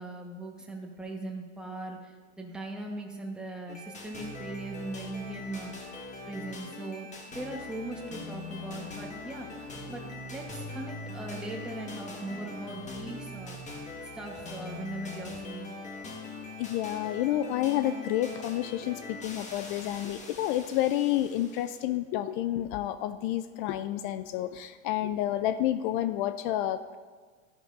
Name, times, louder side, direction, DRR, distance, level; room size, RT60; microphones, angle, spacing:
voice 1, 0.0-6.0 6.3-13.7 14.1-15.7, right 2 dB, ahead, 1.1 m, -39 dB
sound 1, 3.7-21.8, left 2 dB, 20° left, 1.5 m, -42 dB
voice 2, 16.6-27.0, left 12 dB, 45° left, 0.4 m, -30 dB
13.0 x 11.0 x 2.6 m
hypercardioid pair, 115°, 36 cm